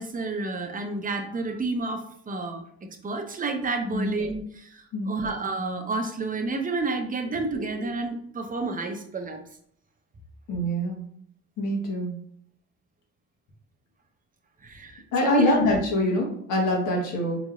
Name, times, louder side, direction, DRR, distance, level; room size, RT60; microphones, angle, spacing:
voice 1, 0.0-2.6 3.0-9.4 14.6-15.6, right 3 dB, 30° right, 5 dB, 0.6 m, -30 dB
voice 2, 10.5-11.0 11.6-12.1 15.1-17.4, left 1 dB, 85° left, 0 dB, 1.2 m, -24 dB
3.9 x 3.0 x 2.3 m, 0.64 s
cardioid pair, 90°, 30 cm